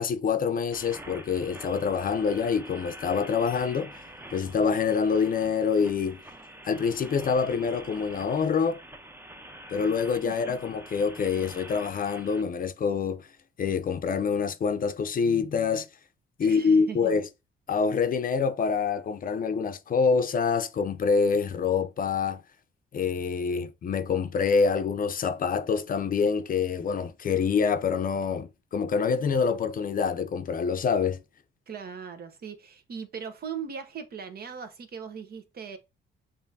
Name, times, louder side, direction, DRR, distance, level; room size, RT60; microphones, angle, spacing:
voice 1, 0.0-4.0 4.3-6.2 6.6-8.8 9.7-13.3 13.6-15.9 16.4-17.3 17.7-22.4 22.9-31.2, left 5 dB, 45° left, 0.6 m, -26 dB
sound 1, 0.7-12.4, right 1 dB, 10° right, 0.7 m, -46 dB
voice 2, 10.2-10.6 16.4-17.1 31.7-35.8, right 6 dB, 50° right, 0.9 m, -39 dB
7.0 x 2.7 x 2.7 m
cardioid pair, 90°, 20 cm